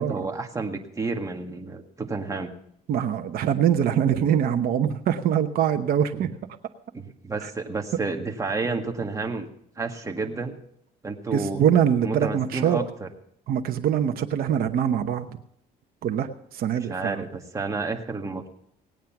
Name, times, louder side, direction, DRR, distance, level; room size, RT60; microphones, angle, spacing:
voice 1, 0.0-2.5 6.2-6.3 6.9-9.5 9.8-10.6 11.0-11.6 12.0-13.1 16.9-18.5, right 3 dB, 20° right, 3 dB, 1.8 m, -30 dB
voice 2, 2.9-6.3 7.4-7.5 11.3-12.8 13.5-15.3 16.0-17.3, right 9 dB, 60° right, 6 dB, 1.0 m, -23 dB
18.0 x 9.1 x 5.9 m, 0.72 s
cardioid pair, 110°, 17 cm